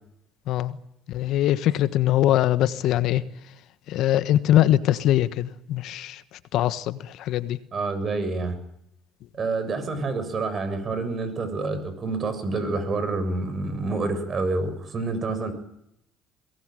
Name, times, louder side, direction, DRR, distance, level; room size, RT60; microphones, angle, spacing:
voice 1, 0.5-0.8 1.1-3.2 3.9-6.2 6.5-7.6, left 12 dB, 70° left, 13 dB, 1.4 m, -22 dB
voice 2, 7.7-8.6 9.3-15.5, right 3 dB, 45° right, 11 dB, 7.2 m, -28 dB
23.0 x 19.0 x 9.2 m, 0.79 s
supercardioid pair, 70°, 0 cm